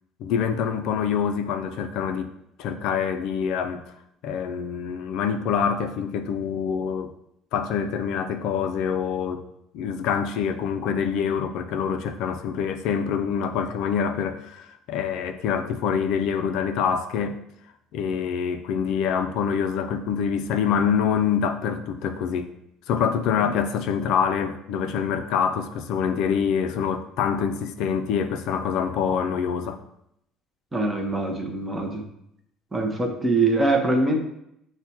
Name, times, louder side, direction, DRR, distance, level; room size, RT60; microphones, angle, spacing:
voice 1, 0.2-2.3 2.6-3.8 4.2-7.1 7.5-9.5 9.7-17.4 17.9-22.5 22.9-29.8, left 7 dB, 70° left, 0.3 m, -25 dB
voice 2, 30.7-32.0 32.7-34.2, right 2 dB, 10° right, 0.6 m, -23 dB
5.8 x 2.1 x 4.1 m
cardioid pair, 135°, 0 cm